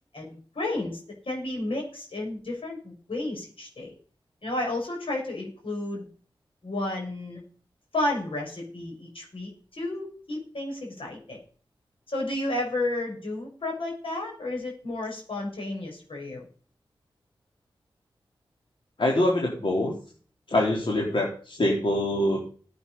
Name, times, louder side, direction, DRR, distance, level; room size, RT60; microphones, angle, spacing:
voice 1, 0.1-1.0 1.2-3.9 4.4-6.0 6.6-7.4 7.9-11.4 12.1-16.4, left 2 dB, 85° left, 0 dB, 6.4 m, -32 dB
voice 2, 19.0-19.9 20.5-22.4, left 1 dB, 65° left, -2 dB, 3.6 m, -24 dB
15.5 x 8.5 x 5.5 m, 0.43 s
wide cardioid pair, 70°, 9 cm